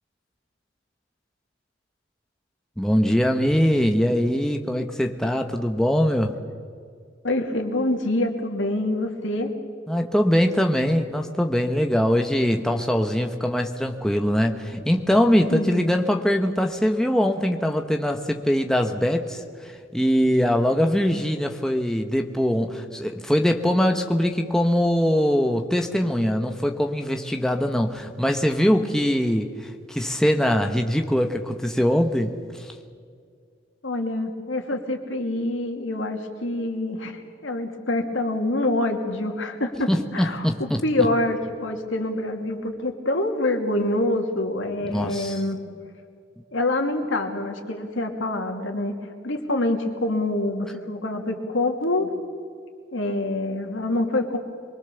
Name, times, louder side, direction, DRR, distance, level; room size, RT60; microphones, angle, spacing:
voice 1, 2.8-6.4 9.9-32.7 39.9-40.8 44.8-45.3, equal, 5° left, 4 dB, 1.0 m, -22 dB
voice 2, 7.2-9.5 15.5-16.0 33.8-45.6 46.5-48.9 49.2-52.1 52.9-54.4, left 2 dB, 90° left, 4 dB, 2.5 m, -26 dB
23.5 x 23.0 x 7.0 m, 2.2 s
head